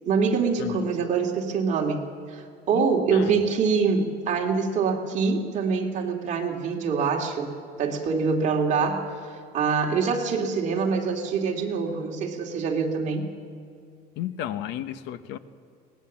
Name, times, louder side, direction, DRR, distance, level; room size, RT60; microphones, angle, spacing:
voice 1, 0.1-2.0 2.3-7.5 7.8-13.2, right 5 dB, 40° right, 0 dB, 2.5 m, -25 dB
voice 2, 0.6-0.9 2.7-3.4 14.2-15.4, left 11 dB, 80° left, 12 dB, 1.1 m, -33 dB
23.0 x 18.5 x 7.3 m, 2.4 s
cardioid pair, 165°, 18 cm